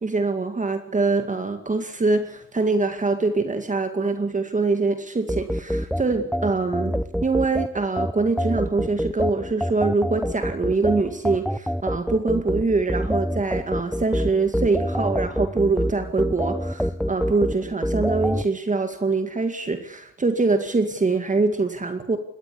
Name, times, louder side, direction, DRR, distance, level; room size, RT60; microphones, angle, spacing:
voice 1, 0.0-6.9 7.2-22.2, right 3 dB, 25° right, 7 dB, 2.2 m, -24 dB
sound 1, 5.3-18.4, equal, ahead, 0.8 m, -26 dB
21.0 x 17.0 x 9.9 m, 0.76 s
cardioid pair, 90°, 30 cm